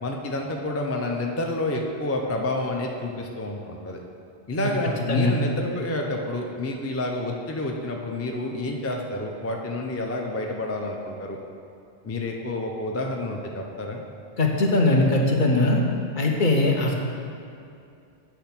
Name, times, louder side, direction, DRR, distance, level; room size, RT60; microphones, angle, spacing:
voice 1, 0.0-4.0 4.5-11.4 12.0-14.0, left 2 dB, 25° left, 1 dB, 0.3 m, -29 dB
voice 2, 14.4-15.8 16.2-16.9, left 2 dB, 50° left, 0 dB, 0.8 m, -20 dB
8.5 x 3.4 x 5.8 m, 2.5 s
omnidirectional pair, 1.1 m